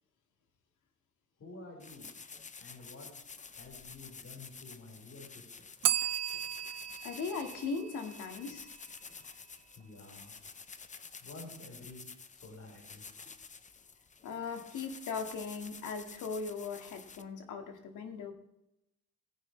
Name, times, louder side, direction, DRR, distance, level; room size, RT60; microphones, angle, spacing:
voice 1, 1.4-2.1 2.6-3.1 3.5-5.5 9.8-10.4 11.2-13.3, left 2 dB, 50° left, -1 dB, 5.2 m, -50 dB
sound 1, 1.8-17.2, left 5 dB, 25° left, 0.7 m, -50 dB
Bell, 5.8-8.7, right 11 dB, 55° right, 0.6 m, -35 dB
voice 2, 7.0-8.7 14.2-18.3, left 5 dB, 80° left, 5 dB, 2.1 m, -39 dB
16.5 x 9.6 x 3.3 m, 0.85 s
cardioid pair, 90°, 30 cm